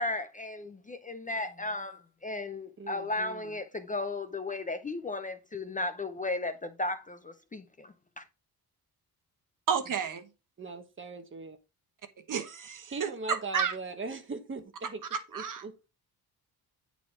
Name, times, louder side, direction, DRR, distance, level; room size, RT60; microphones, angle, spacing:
voice 1, 0.0-8.2, left 2 dB, 20° left, 0.5 m, -35 dB
voice 2, 2.8-3.6 10.6-11.6 12.9-15.0 15.3-15.7, right 3 dB, 30° right, 1.2 m, -40 dB
voice 3, 9.7-10.3 12.3-13.7 15.1-15.6, right 7 dB, 55° right, 1.2 m, -31 dB
9.4 x 4.1 x 4.6 m
wide cardioid pair, 150°, 38 cm